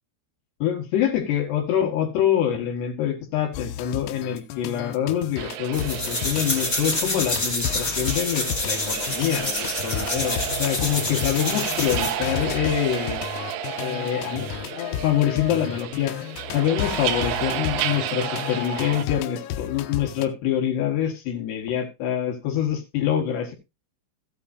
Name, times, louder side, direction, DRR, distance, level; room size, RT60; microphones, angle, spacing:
voice 1, 0.6-13.2 13.8-14.5 14.7-16.2 16.5-23.5, left 10 dB, 65° left, 2 dB, 3.3 m, -25 dB
sound 1, 3.5-20.3, left 11 dB, 85° left, 3.5 m, -33 dB
sound 2, 5.4-19.0, right 10 dB, 90° right, 3.6 m, -32 dB
sound 3, 5.7-12.2, left 2 dB, 20° left, 1.6 m, -28 dB
14.5 x 8.5 x 2.7 m, 0.24 s
omnidirectional pair, 6.0 m